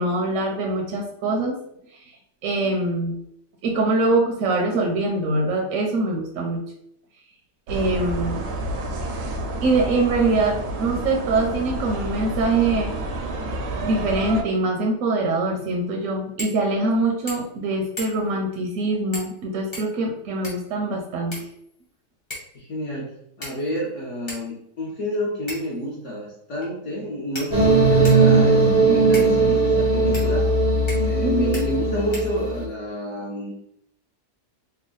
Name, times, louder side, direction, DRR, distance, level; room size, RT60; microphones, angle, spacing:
voice 1, 0.0-1.6 2.4-3.2 3.6-6.6 7.7-8.4 9.6-12.9 13.8-21.4 31.2-31.7, right 2 dB, 65° right, 1 dB, 0.8 m, -23 dB
sound 1, 7.7-14.4, right 1 dB, 85° right, 1.2 m, -29 dB
sound 2, 16.4-16.6 16.9-17.0 17.3-17.6 18.0-18.4 19.1-19.4 19.7-20.7 21.3-21.9 22.3-22.6 23.4-23.8 24.3-24.4 25.5-25.8 26.6-26.7 27.3-28.3 29.1-29.3 30.1-30.3 30.9-31.2 31.5-31.7 32.1-32.7, equal, 25° left, 0.7 m, -37 dB
voice 2, 22.5-30.5 31.0-33.5, equal, 55° left, -5 dB, 1.1 m, -29 dB
sound 3, 27.5-32.7, right 3 dB, 40° right, 0.5 m, -18 dB
3.3 x 2.2 x 3.8 m, 0.71 s
omnidirectional pair, 1.7 m